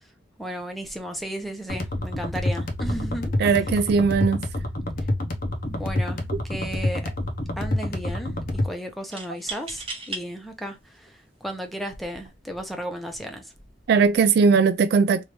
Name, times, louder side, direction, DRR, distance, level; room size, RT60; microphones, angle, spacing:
voice 1, 0.4-3.8 5.7-7.1 7.6-13.5, equal, ahead, 0.8 m, -34 dB
sound 1, 1.7-8.7, left 1 dB, 50° left, 0.8 m, -28 dB
voice 2, 3.4-4.4 6.3-6.4 13.9-15.3, right 5 dB, 60° right, 0.3 m, -19 dB
sound 2, 6.0-6.2 6.5-7.2 9.1-10.2 11.0-11.1 12.0-12.3, right 3 dB, 30° right, 0.9 m, -36 dB
3.2 x 2.6 x 3.0 m
head